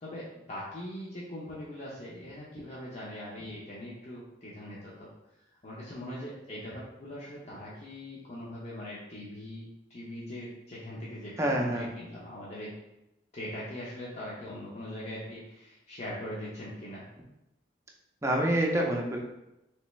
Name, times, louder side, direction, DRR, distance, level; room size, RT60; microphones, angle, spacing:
voice 1, 0.0-5.1 5.6-12.7 13.3-17.1, left 1 dB, 35° left, -7 dB, 0.6 m, -41 dB
voice 2, 11.4-11.9 18.2-19.2, right 1 dB, 15° right, 0 dB, 0.5 m, -27 dB
3.3 x 3.1 x 3.1 m, 0.92 s
head